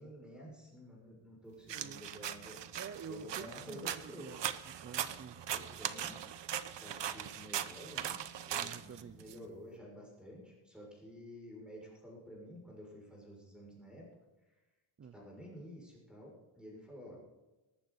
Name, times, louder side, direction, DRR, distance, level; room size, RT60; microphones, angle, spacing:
voice 1, 0.0-2.6 3.1-4.3 5.5-6.2 6.8-14.1 15.0-17.2, equal, ahead, -3 dB, 6.6 m, -51 dB
voice 2, 1.7-2.0 2.8-5.5 8.5-9.2 15.0-15.2, right 7 dB, 30° right, 10 dB, 0.6 m, -49 dB
sound 1, 1.7-9.4, right 10 dB, 60° right, 0.9 m, -40 dB
19.5 x 14.5 x 4.2 m, 1.1 s
wide cardioid pair, 165°, 50 cm